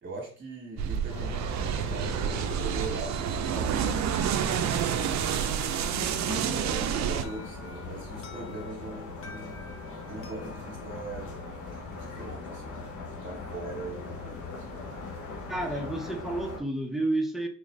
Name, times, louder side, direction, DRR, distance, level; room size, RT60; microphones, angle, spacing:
voice 1, 0.0-4.0 4.3-5.3 6.2-9.7 10.1-11.4 11.7-14.4, right 2 dB, 40° right, 1.2 m, -41 dB
sound 1, 0.8-7.2, right 9 dB, 65° right, 0.4 m, -29 dB
sound 2, 1.1-16.6, left 4 dB, 85° left, 1.0 m, -40 dB
Alarm, 7.2-12.0, left 3 dB, 45° left, 0.7 m, -52 dB
voice 2, 15.5-17.5, right 2 dB, ahead, 0.7 m, -30 dB
3.6 x 2.5 x 3.1 m
cardioid pair, 90°, 30 cm